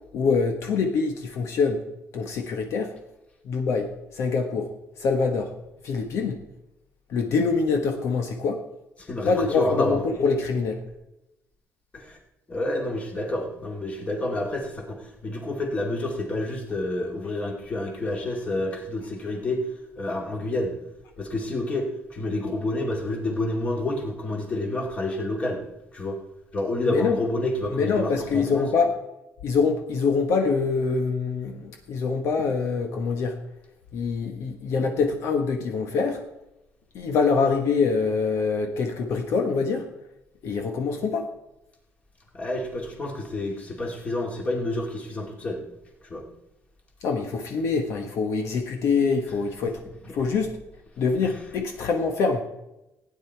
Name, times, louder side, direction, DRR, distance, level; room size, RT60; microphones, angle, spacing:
voice 1, 0.1-1.8 2.1-2.9 3.4-5.5 5.8-6.4 7.1-8.6 9.2-10.8 26.9-27.2 27.7-29.0 29.4-33.4 33.9-36.2 36.9-39.9 40.4-41.3 47.0-49.8 50.1-50.6 51.0-52.4, left 4 dB, 65° left, 4 dB, 1.3 m, -25 dB
voice 2, 9.1-10.0 11.9-12.2 12.5-19.6 20.0-20.7 21.2-25.6 25.9-26.2 26.5-28.7 42.3-45.6 46.1-46.2 51.2-51.3, left 1 dB, 25° left, 1 dB, 2.3 m, -29 dB
16.0 x 9.7 x 4.5 m, 0.94 s
cardioid pair, 160°, 5 cm